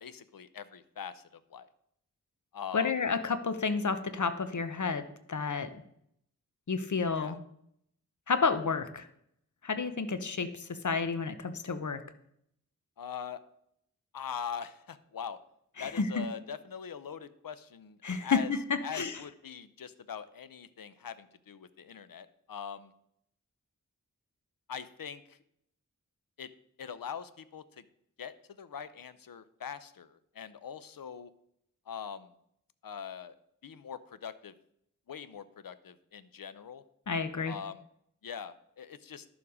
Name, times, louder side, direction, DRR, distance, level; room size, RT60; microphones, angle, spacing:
voice 1, 0.0-1.7 2.5-2.9 7.1-7.4 13.0-13.4 14.1-15.4 15.8-18.5 18.8-22.9 24.7-25.4 26.4-26.5 26.8-27.8 28.2-31.3 31.9-32.3 32.8-33.4 33.6-34.5 35.1-36.8 37.4-37.8 38.2-39.3, left 7 dB, 85° left, 13 dB, 0.7 m, -42 dB
voice 2, 2.7-5.7 6.7-7.4 8.3-9.1 9.6-12.0 15.8-16.3 18.0-19.2 37.1-37.5, left 5 dB, 60° left, 10 dB, 0.9 m, -31 dB
11.0 x 7.1 x 4.9 m, 0.72 s
wide cardioid pair, 70°, 33 cm